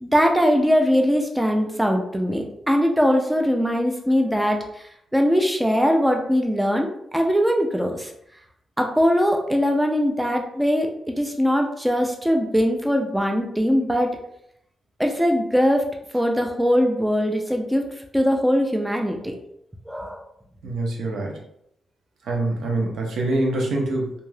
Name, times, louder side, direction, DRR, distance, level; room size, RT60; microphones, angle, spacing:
voice 1, 0.0-8.1 8.8-14.1 15.0-15.9 16.1-17.9 18.1-19.4 19.9-20.2, equal, 5° right, 2 dB, 0.3 m, -21 dB
voice 2, 20.6-21.3 22.3-24.1, right 2 dB, 80° right, 0 dB, 0.7 m, -24 dB
2.6 x 2.3 x 3.2 m, 0.74 s
wide cardioid pair, 135°, 0 cm